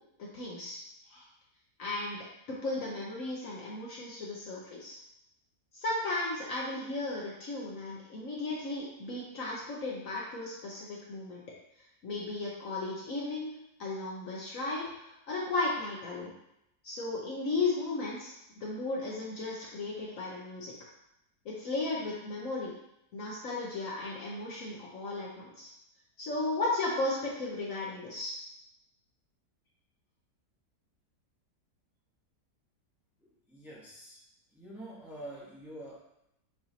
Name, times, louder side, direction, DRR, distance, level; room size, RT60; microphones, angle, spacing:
voice 1, 0.2-0.8 1.1-1.2 1.8-2.2 2.5-5.0 5.7-11.4 12.0-13.5 13.8-16.3 16.8-20.7 21.4-22.7 23.1-25.7 26.2-28.4, left 2 dB, 60° left, -4 dB, 1.1 m, -35 dB
voice 2, 33.2-34.2 34.5-36.0, right 1 dB, ahead, -7 dB, 0.9 m, -46 dB
6.8 x 2.8 x 2.8 m, 0.81 s
omnidirectional pair, 1.8 m